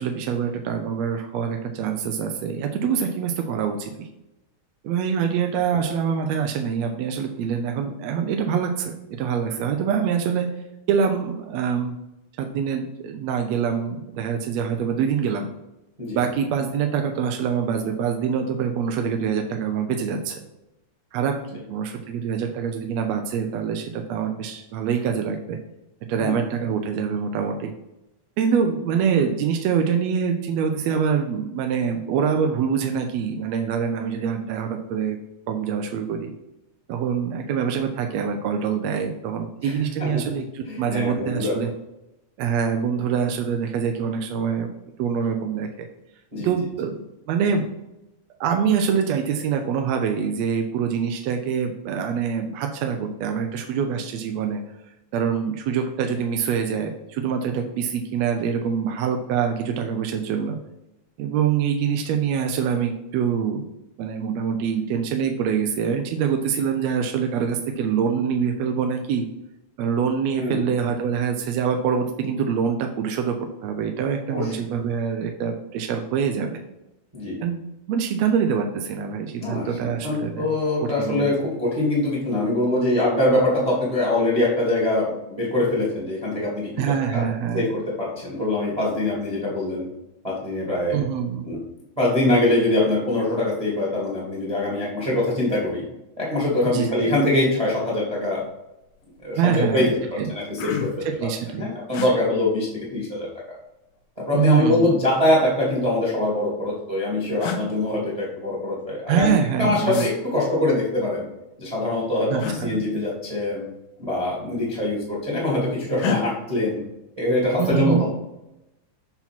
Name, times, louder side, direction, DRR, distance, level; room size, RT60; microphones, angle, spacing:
voice 1, 0.0-4.1 4.8-10.5 10.9-11.9 12.4-15.5 16.1-20.4 21.1-25.6 26.1-27.7 28.4-35.2 35.5-36.3 36.9-41.7 42.4-45.9 46.4-47.0 47.3-47.7 48.4-54.6 55.1-60.6 61.2-63.6 64.0-69.2 69.8-73.3 73.6-76.6 77.4-77.6 77.9-80.5 81.0-81.3 86.8-87.7 90.9-91.6 96.6-97.2 99.3-99.9 100.2-100.3 101.0-101.7 104.3-105.0 109.1-110.1 112.3-112.8 117.6-118.0, right 7 dB, 75° right, 4 dB, 1.7 m, -25 dB
voice 2, 40.0-40.3 40.7-41.5 46.3-46.5 70.4-70.6 74.3-74.5 77.1-77.3 79.4-86.7 87.1-87.2 87.5-89.8 90.2-91.0 91.4-91.6 91.9-95.8 96.2-98.4 99.2-100.0 100.3-101.3 101.5-103.3 104.2-109.3 109.6-111.2 111.6-113.6 114.0-116.8 117.2-118.1, left 1 dB, 15° right, -5 dB, 1.6 m, -23 dB
sound 1, 98.2-98.5 98.8-99.3 99.8-99.9 100.2-101.1 101.9-102.1 103.4-104.0 105.2-106.0 106.9-107.0 107.4-107.6 109.9-110.1 112.4-112.6 114.0-114.2 114.5-115.1 116.0-116.2, left 7 dB, 70° left, 1.9 m, -31 dB
5.9 x 5.7 x 4.4 m, 0.90 s
omnidirectional pair, 3.4 m